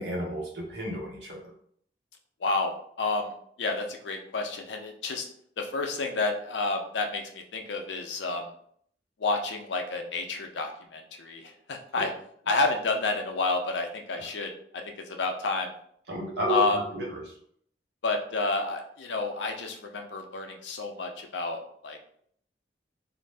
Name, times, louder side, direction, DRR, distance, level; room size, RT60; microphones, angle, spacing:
voice 1, 0.0-1.5 11.9-12.0 16.1-17.2, right 1 dB, 75° right, -3 dB, 1.0 m, -32 dB
voice 2, 2.4-3.3 3.6-5.3 5.6-8.5 9.2-12.1 12.5-14.5 15.1-15.7 16.5-16.8 18.0-22.0, left 3 dB, 85° left, 4 dB, 0.5 m, -30 dB
2.5 x 2.0 x 3.2 m, 0.64 s
head